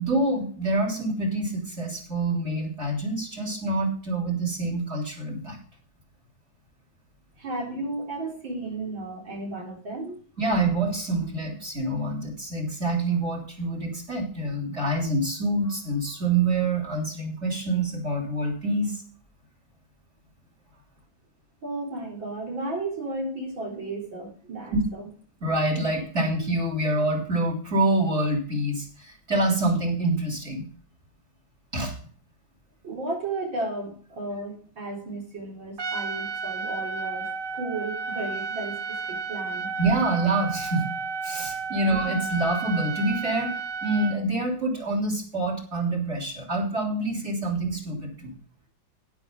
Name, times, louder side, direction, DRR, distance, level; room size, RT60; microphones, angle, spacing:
voice 1, 0.0-5.6 10.4-19.0 25.4-30.7 31.7-31.9 39.8-40.9 41.2-48.3, right 2 dB, 35° right, 1 dB, 3.9 m, -26 dB
voice 2, 7.4-10.2 21.6-25.1 32.8-39.7 41.9-42.1, right 2 dB, 80° right, -1 dB, 4.5 m, -34 dB
Trumpet, 35.8-44.2, right 4 dB, 55° right, 0.6 m, -32 dB
12.5 x 10.0 x 3.9 m, 0.43 s
omnidirectional pair, 2.0 m